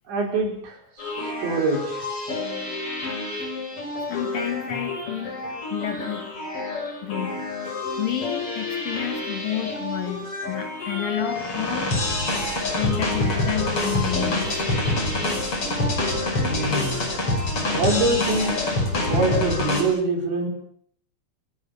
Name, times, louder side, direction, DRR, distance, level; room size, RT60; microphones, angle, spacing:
voice 1, 0.1-0.8 1.0-2.0 16.5-17.1 17.7-20.5, right 2 dB, 70° right, 2 dB, 7.8 m, -25 dB
sound 1, 1.0-19.8, left 2 dB, 30° left, 6.4 m, -27 dB
voice 2, 4.1-5.4 5.7-6.3 7.0-11.9 12.8-14.5, left 11 dB, 55° left, 5 dB, 3.9 m, -30 dB
29.0 x 18.0 x 7.4 m, 0.64 s
omnidirectional pair, 5.5 m